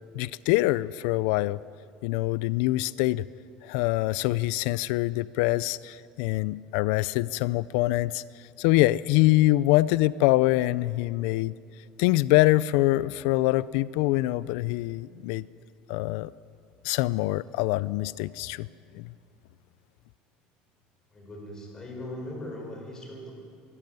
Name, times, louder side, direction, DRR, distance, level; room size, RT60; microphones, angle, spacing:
voice 1, 0.1-1.6 2.0-3.2 3.6-8.2 8.6-11.5 12.0-15.4 15.9-16.3 16.8-18.7 18.9-19.0, left 18 dB, 75° left, 19 dB, 0.4 m, -24 dB
voice 2, 21.1-23.3, left 1 dB, 20° left, 1 dB, 5.2 m, -39 dB
24.0 x 12.5 x 9.4 m, 2.4 s
cardioid pair, 150°, 3 cm